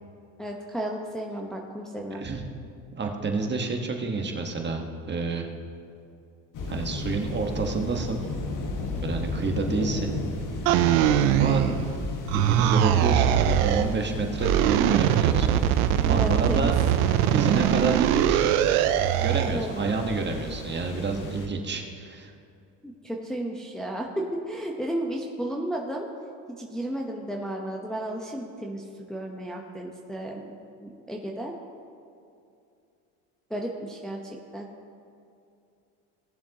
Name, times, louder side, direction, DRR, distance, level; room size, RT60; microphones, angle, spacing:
voice 1, 0.4-2.2 11.5-11.8 16.1-16.7 19.5-20.0 22.8-26.1 26.6-31.5 33.5-34.2 34.5-34.7, right 1 dB, ahead, -1 dB, 1.0 m, -33 dB
voice 2, 2.1-2.4 2.9-5.5 6.7-8.2 9.0-10.1 11.3-11.7 11.9-16.7 17.3-18.5 19.2-22.3, right 4 dB, 25° right, 2 dB, 1.4 m, -29 dB
sound 1, 6.5-21.5, left 2 dB, 45° left, 1.6 m, -35 dB
sound 2, 10.7-12.0 12.3-13.9 14.4-19.6, right 11 dB, 85° right, 0.7 m, -22 dB
18.0 x 7.1 x 2.9 m, 2.5 s
supercardioid pair, 90°, 42 cm